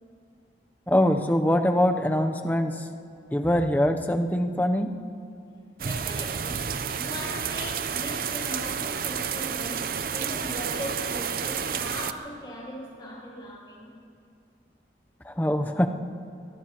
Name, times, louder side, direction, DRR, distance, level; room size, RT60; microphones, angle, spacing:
voice 1, 0.9-2.7 3.3-4.9 15.3-15.9, equal, 10° left, 6 dB, 0.6 m, -23 dB
voice 2, 5.8-13.9, equal, 25° left, -5 dB, 2.8 m, -39 dB
sound 1, 5.8-12.1, right 7 dB, 55° right, 0.5 m, -30 dB
23.5 x 20.0 x 3.0 m, 2.4 s
head